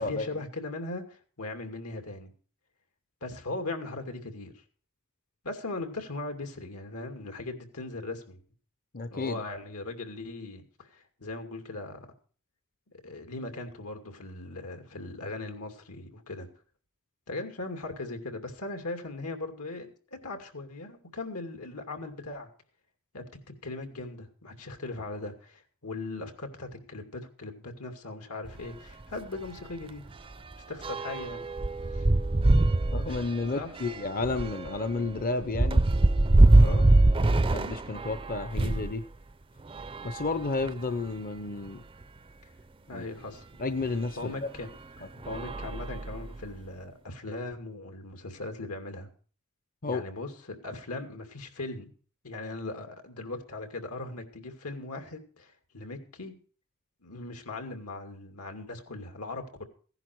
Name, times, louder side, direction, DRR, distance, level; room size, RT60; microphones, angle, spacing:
voice 1, 0.0-2.3 3.2-4.5 5.4-8.4 9.1-12.1 13.0-16.5 17.3-22.5 23.1-23.2 23.6-30.0 30.7-31.4 31.9-32.1 33.1-33.2 33.5-33.7 36.5-36.9 42.9-43.4 44.2-44.7 45.0-49.1 49.8-51.9 52.2-56.4 57.0-59.6, left 2 dB, 90° left, 5 dB, 2.6 m, -39 dB
voice 2, 8.9-9.4 32.9-35.8 36.6-36.8 37.1-39.0 40.0-41.8 42.9-43.0 43.6-44.5 49.8-50.0, left 3 dB, 40° left, 11 dB, 0.7 m, -32 dB
sound 1, 28.4-28.6 29.0-29.1 29.4-38.9 39.6-41.0 41.7-41.8 42.0-42.1 43.8-44.0 44.6-44.8 45.2-46.5, right 2 dB, 25° right, 0.5 m, -24 dB
16.0 x 11.0 x 4.6 m, 0.41 s
head